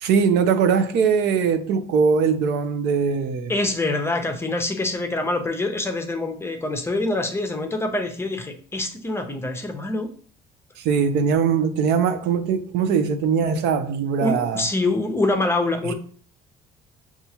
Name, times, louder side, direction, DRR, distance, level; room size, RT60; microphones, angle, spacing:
voice 1, 0.0-3.5 10.8-14.6 15.9-16.0, right 6 dB, 80° right, 0.5 m, -21 dB
voice 2, 3.5-10.1 14.2-15.9, left 2 dB, 15° left, 0.6 m, -25 dB
5.5 x 2.4 x 2.8 m
cardioid pair, 110°, 17 cm